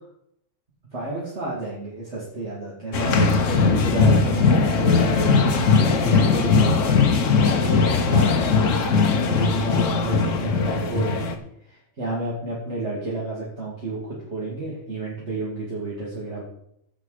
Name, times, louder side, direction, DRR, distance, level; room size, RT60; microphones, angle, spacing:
voice 1, 0.9-11.4 11.7-16.4, right 2 dB, 55° right, -7 dB, 2.6 m, -31 dB
sound 1, 2.9-11.3, left 4 dB, 70° left, 1.3 m, -19 dB
14.5 x 5.1 x 5.0 m, 0.73 s
omnidirectional pair, 1.4 m